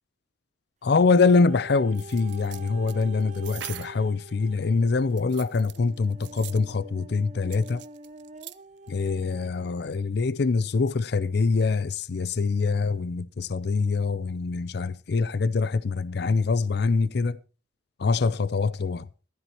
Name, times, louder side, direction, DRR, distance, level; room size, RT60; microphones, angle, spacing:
voice 1, 0.8-7.8 8.9-17.4 18.0-19.1, left 4 dB, 55° left, 0.5 m, -24 dB
sound 1, 0.9-10.0 10.6-10.7, right 2 dB, 35° right, 0.8 m, -46 dB
sound 2, 1.9-4.0 5.1-6.7 7.5-8.6 8.9-9.0, right 13 dB, 65° right, 0.6 m, -42 dB
15.0 x 13.0 x 3.0 m
head